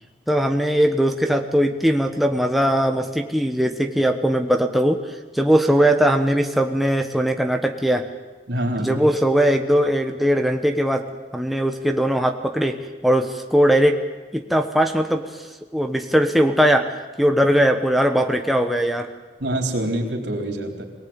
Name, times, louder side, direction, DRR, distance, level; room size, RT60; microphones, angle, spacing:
voice 1, 0.3-5.0 5.3-8.1 8.8-12.8 13.0-14.0 14.3-15.3 15.7-16.9 17.2-19.1, equal, ahead, 4 dB, 1.2 m, -20 dB
voice 2, 8.5-9.0 19.4-20.8, right 1 dB, 80° right, 2 dB, 4.1 m, -25 dB
24.0 x 18.5 x 9.0 m, 1.3 s
head